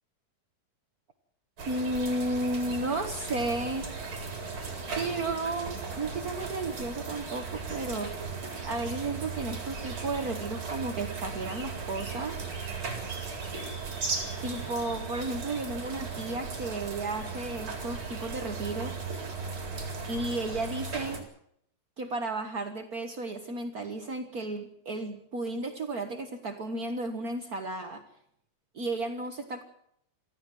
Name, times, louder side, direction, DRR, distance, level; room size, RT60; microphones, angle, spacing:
sound 1, 1.6-21.2, right 4 dB, 35° right, 4.6 m, -37 dB
voice 1, 1.7-3.9 4.9-8.2 8.6-12.4 14.4-19.0 20.1-21.3 22.0-28.0 28.7-29.6, right 2 dB, 70° right, 5 dB, 0.8 m, -33 dB
23.5 x 15.0 x 7.6 m, 0.71 s
omnidirectional pair, 4.1 m